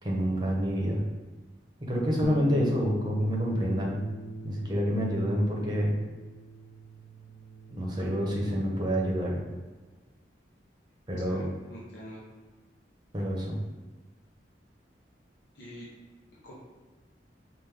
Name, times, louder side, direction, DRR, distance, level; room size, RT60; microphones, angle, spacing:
voice 1, 0.0-1.0 1.8-4.0 4.4-6.0 7.7-9.4 11.1-11.4 13.1-13.6, equal, 25° right, -2 dB, 0.9 m, -28 dB
Bass guitar, 2.2-8.5, right 1 dB, 50° left, 0.3 m, -41 dB
voice 2, 11.3-12.2 15.5-15.9 16.4-16.5, equal, 70° left, -6 dB, 0.9 m, -45 dB
5.3 x 2.5 x 3.4 m, 1.3 s
head